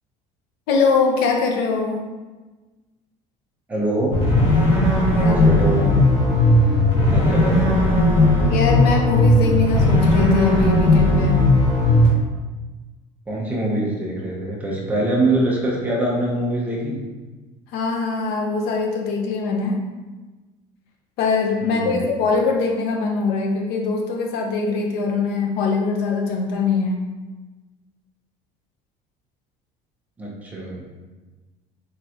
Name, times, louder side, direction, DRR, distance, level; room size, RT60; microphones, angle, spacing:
voice 1, 0.7-2.0 5.2-5.3 8.5-11.4 17.7-19.8 21.2-27.0, left 4 dB, 70° left, 1 dB, 0.8 m, -22 dB
voice 2, 3.7-4.2 5.1-6.0 7.1-7.8 13.3-17.0 21.6-22.1 30.2-30.8, right 1 dB, 10° right, -4 dB, 0.9 m, -24 dB
sound 1, 4.1-12.1, left 1 dB, 40° left, 1.4 m, -16 dB
3.8 x 3.8 x 2.9 m, 1.2 s
cardioid pair, 155°, 17 cm